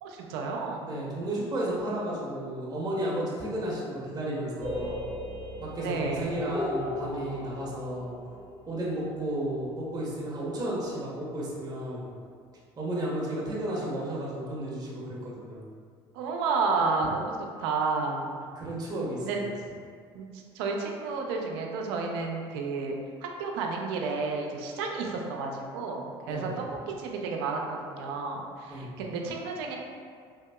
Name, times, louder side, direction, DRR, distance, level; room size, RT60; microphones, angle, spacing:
voice 1, 0.0-0.9 5.8-6.3 16.1-18.3 19.2-19.4 20.1-20.3 20.5-22.9 23.2-29.7, right 4 dB, 75° right, 1 dB, 0.5 m, -31 dB
voice 2, 0.8-5.0 5.6-8.1 8.7-12.0 12.8-15.6 18.5-19.5 26.3-26.6 28.7-28.9, right 1 dB, 30° right, -6 dB, 0.8 m, -33 dB
sound 1, 4.6-10.4, left 1 dB, 10° left, 1.1 m, -37 dB
3.5 x 2.7 x 2.2 m, 2.1 s
hypercardioid pair, 70°, 13 cm